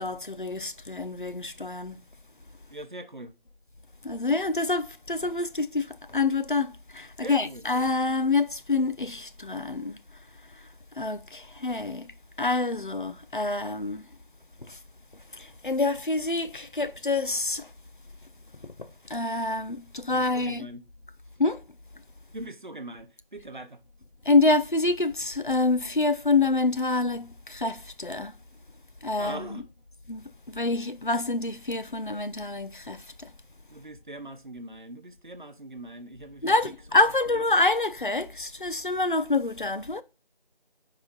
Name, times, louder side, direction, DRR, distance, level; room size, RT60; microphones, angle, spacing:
voice 1, 0.0-2.0 4.0-10.0 11.0-12.1 12.4-14.0 14.7-14.8 15.3-17.7 18.8-20.7 21.4-21.6 24.3-28.3 29.0-29.6 30.1-30.2 30.5-33.3 36.4-40.0, left 3 dB, 55° left, 0.6 m, -27 dB
voice 2, 2.7-3.3 7.2-7.6 20.1-20.8 22.3-23.8 29.2-29.6 33.7-36.7 37.3-37.4, right 1 dB, 55° right, 0.8 m, -41 dB
5.4 x 4.9 x 3.8 m
figure-of-eight pair, 180°, 29 cm